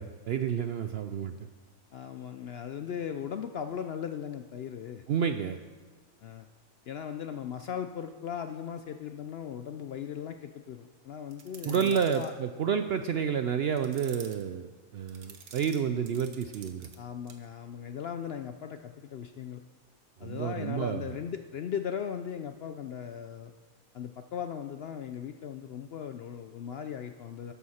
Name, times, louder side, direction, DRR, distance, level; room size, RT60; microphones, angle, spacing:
voice 1, 0.0-1.4 5.1-5.6 11.6-16.9 20.2-21.1, right 7 dB, 65° right, 8 dB, 0.6 m, -30 dB
voice 2, 1.9-5.0 6.2-6.5 6.9-12.3 17.0-19.6 20.2-23.5 23.9-27.5, left 8 dB, 65° left, 8 dB, 0.6 m, -38 dB
sound 1, 11.3-12.3 13.7-14.4 15.1-17.0 17.3-17.5, right 6 dB, 85° right, 1.5 m, -49 dB
12.5 x 11.0 x 4.3 m, 1.5 s
omnidirectional pair, 1.5 m